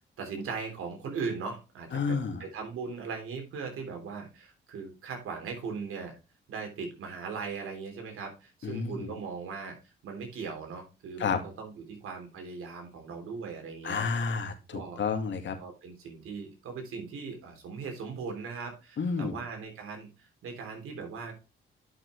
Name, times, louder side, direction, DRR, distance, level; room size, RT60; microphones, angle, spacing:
voice 1, 0.2-6.2 6.5-14.0 14.7-15.0 15.6-21.3, right 5 dB, 85° right, 3 dB, 3.3 m, -39 dB
voice 2, 1.9-2.4 8.6-9.1 11.2-11.4 13.8-15.6 19.0-19.4, left 5 dB, 60° left, 5 dB, 2.1 m, -30 dB
11.0 x 6.0 x 3.1 m, 0.29 s
cardioid pair, 80°, 21 cm